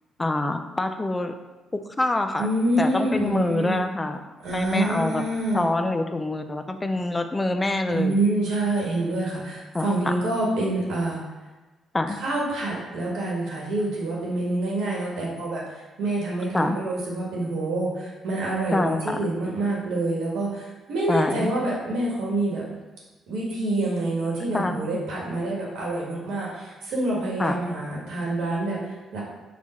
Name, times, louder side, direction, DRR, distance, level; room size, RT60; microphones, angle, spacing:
voice 1, 0.2-1.3 1.7-2.5 2.8-4.2 4.5-5.2 5.5-8.2 9.7-10.1 11.9-12.2 16.5-16.8 18.7-19.2 21.1-21.5 24.5-25.0 27.4-27.6, left 2 dB, 20° left, 7 dB, 0.3 m, -25 dB
voice 2, 2.4-3.8 4.4-5.6 7.9-11.2 12.2-22.7 23.3-29.2, right 2 dB, 80° right, -4 dB, 1.3 m, -27 dB
4.4 x 2.3 x 4.1 m, 1.2 s
cardioid pair, 90°, 0 cm